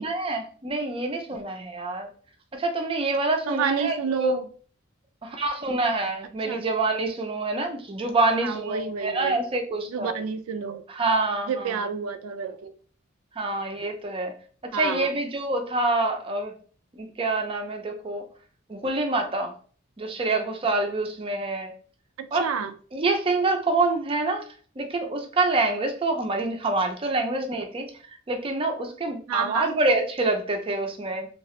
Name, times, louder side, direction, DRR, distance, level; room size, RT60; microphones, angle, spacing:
voice 1, 0.0-2.1 2.5-4.4 5.2-10.1 10.9-11.8 13.4-14.3 14.7-16.5 17.0-18.2 18.7-19.5 20.0-21.7 22.3-22.5 22.9-24.4 24.8-27.9 28.3-31.3, right 2 dB, 25° right, 4 dB, 0.4 m, -26 dB
voice 2, 3.5-4.5 6.4-6.7 8.4-9.4 9.9-10.8 11.5-12.7 14.7-15.1 22.2-22.7 29.3-29.7, right 6 dB, 90° right, 9 dB, 0.4 m, -29 dB
2.8 x 2.4 x 3.1 m, 0.42 s
head